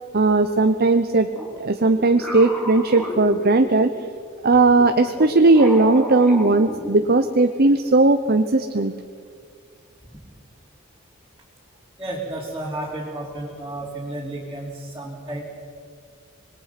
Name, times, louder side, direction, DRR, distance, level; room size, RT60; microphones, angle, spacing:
voice 1, 0.1-1.3 1.6-3.9 4.4-8.9, right 3 dB, 50° right, 7 dB, 0.8 m, -17 dB
sound 1, 1.3-4.1 4.7-7.4, left 1 dB, 5° left, 3.6 m, -33 dB
voice 2, 12.0-15.4, right 1 dB, 15° right, -5 dB, 3.3 m, -32 dB
26.0 x 21.0 x 6.0 m, 2.1 s
head